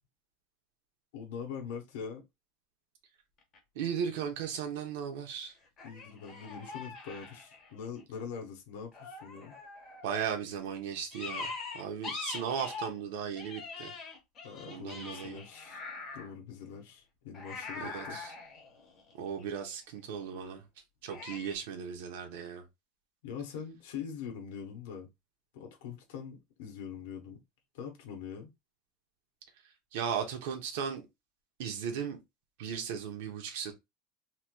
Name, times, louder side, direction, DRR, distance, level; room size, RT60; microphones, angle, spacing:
voice 1, 1.1-2.2 5.8-9.5 14.4-15.8 16.1-18.2 23.2-25.1 25.5-27.4 27.7-28.5, left 7 dB, 70° left, 0.8 m, -43 dB
sound 1, 3.4-3.6 5.8-8.0 8.9-10.3 11.1-13.0 13.4-16.3 17.3-19.6 21.1-21.5, left 4 dB, 25° left, 1.0 m, -43 dB
voice 2, 3.8-5.5 10.0-13.9 14.7-15.4 17.8-18.3 19.2-20.6 21.0-22.6 29.9-31.0 31.6-32.2 32.6-33.7, right 7 dB, 70° right, 0.8 m, -36 dB
3.1 x 2.9 x 2.2 m
supercardioid pair, 170°, 0 cm